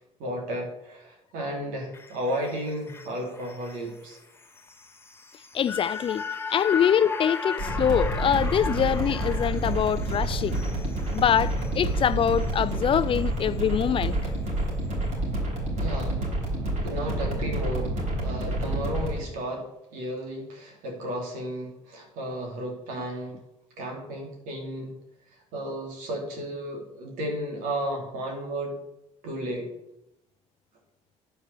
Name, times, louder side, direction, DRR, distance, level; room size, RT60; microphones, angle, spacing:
voice 1, 0.0-4.2 15.7-16.5 16.8-17.9 18.2-23.4 23.8-25.0 25.3-28.8 29.2-29.7, equal, 85° right, 2.8 m, -33 dB
sound 1, 1.9-14.3 14.6-14.7, left 5 dB, 20° left, 0.9 m, -38 dB
voice 2, 5.5-6.2 6.5-10.6 11.1-14.2, left 8 dB, 40° left, 0.4 m, -24 dB
sound 2, 7.6-19.2, right 1 dB, 65° right, 4.0 m, -28 dB
9.7 x 5.0 x 6.8 m
supercardioid pair, 85°, 13 cm